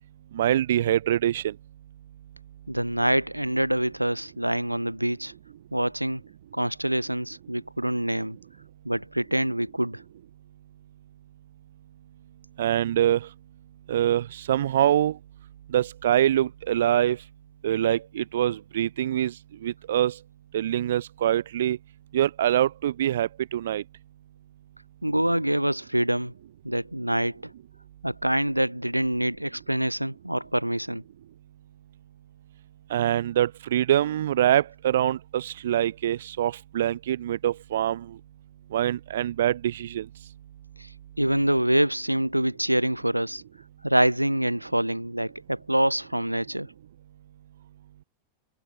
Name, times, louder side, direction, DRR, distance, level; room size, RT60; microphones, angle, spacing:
voice 1, 0.3-1.5 12.6-13.3 13.9-15.2 15.7-17.2 17.6-19.3 19.6-20.2 20.5-21.8 22.1-23.8 32.9-38.2 38.7-40.1, right 11 dB, 60° right, 7.3 m, -24 dB
voice 2, 2.7-5.3 5.7-6.2 6.5-8.4 8.9-10.0 25.0-26.3 26.6-27.5 28.0-31.0 40.8-40.9 41.2-43.4 43.8-46.7, right 1 dB, 90° right, 5.7 m, -25 dB
figure-of-eight pair, 90°, 0 cm